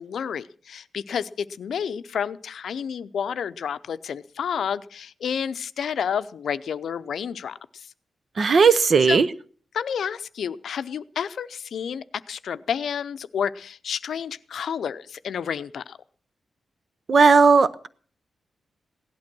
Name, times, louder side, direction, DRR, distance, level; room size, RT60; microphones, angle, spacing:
voice 1, 0.0-7.9 9.1-9.2 9.7-16.0, left 7 dB, 75° left, 13 dB, 0.6 m, -30 dB
voice 2, 8.4-9.3 17.1-17.9, right 5 dB, 40° right, 15 dB, 0.7 m, -16 dB
17.0 x 11.5 x 6.1 m, 0.44 s
wide cardioid pair, 170°, 0 cm